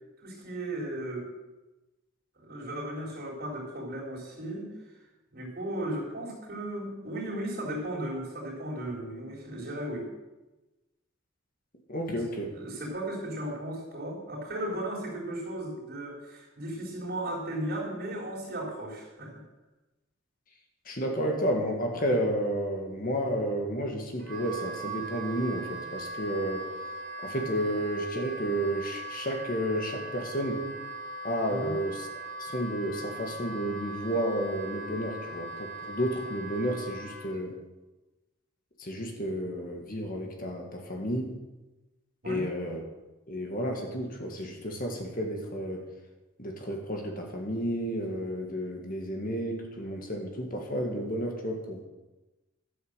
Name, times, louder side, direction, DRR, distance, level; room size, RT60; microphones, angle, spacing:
voice 1, 0.2-1.3 2.4-4.7 5.3-10.1 12.1-12.2 12.5-19.4 31.5-31.8 42.2-42.5, right 1 dB, 45° right, -3 dB, 3.9 m, -36 dB
voice 2, 11.9-12.5 20.9-26.7 27.2-30.6 31.2-32.1 32.4-37.6 38.8-41.3 42.3-42.8 43.3-45.9 46.4-51.9, equal, 40° left, 2 dB, 1.7 m, -31 dB
Wind instrument woodwind instrument, 24.2-37.4, right 1 dB, 65° right, 2.9 m, -40 dB
12.5 x 8.3 x 6.7 m, 1.1 s
head